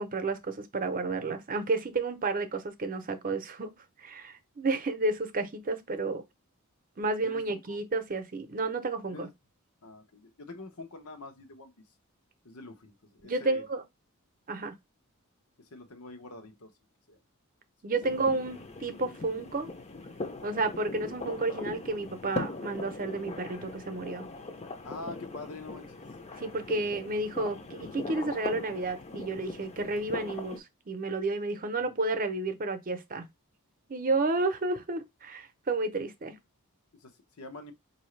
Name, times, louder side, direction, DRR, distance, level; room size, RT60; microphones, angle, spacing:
voice 1, 0.0-3.7 4.0-6.2 7.0-9.3 13.2-13.8 14.5-14.7 17.8-19.7 20.4-24.3 26.4-33.2 33.9-36.4, right 3 dB, 40° right, 0.7 m, -31 dB
voice 2, 7.2-7.8 9.1-9.3 9.8-11.7 12.4-13.7 15.6-16.7 17.1-17.2 18.1-18.3 24.8-26.0 31.8-31.9 37.0-37.7, left 2 dB, 90° left, 0.9 m, -45 dB
sound 1, 18.0-30.6, left 2 dB, 30° left, 0.5 m, -40 dB
4.8 x 2.7 x 3.2 m
head